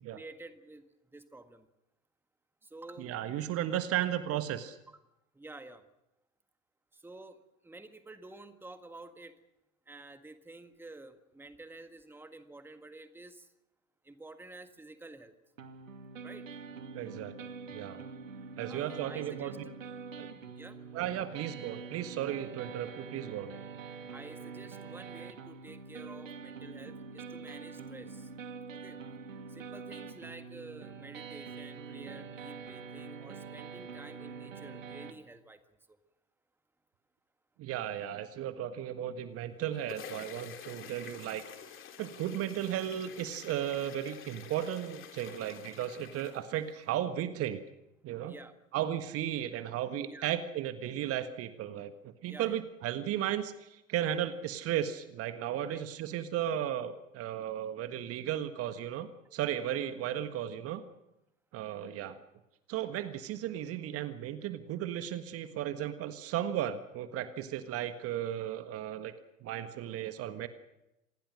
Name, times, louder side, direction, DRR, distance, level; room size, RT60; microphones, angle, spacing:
voice 1, 0.1-0.8 1.1-1.7 2.6-3.1 4.9-5.0 5.3-5.8 6.9-7.4 7.6-9.3 9.9-13.5 14.0-15.3 16.2-16.5 18.7-19.7 20.5-20.9 24.1-28.3 28.7-29.0 29.5-35.6 35.9-36.0 48.3-49.1 50.0-50.3 52.2-52.6 55.6-55.8 59.2-59.6, right 2 dB, 5° right, 9 dB, 1.7 m, -50 dB
voice 2, 3.0-4.8 16.9-17.3 17.7-18.0 18.5-19.5 20.2-20.3 20.9-23.5 37.6-41.4 42.0-47.6 48.0-48.3 48.7-60.8 61.5-62.2 62.7-69.1 69.4-70.5, right 11 dB, 35° right, 10 dB, 1.6 m, -35 dB
sound 1, 15.6-35.1, right 5 dB, 70° right, 2.4 m, -45 dB
sound 2, 39.4-46.9, left 8 dB, 30° left, 3.0 m, -49 dB
27.5 x 20.0 x 6.5 m, 0.90 s
figure-of-eight pair, 80°, 40 cm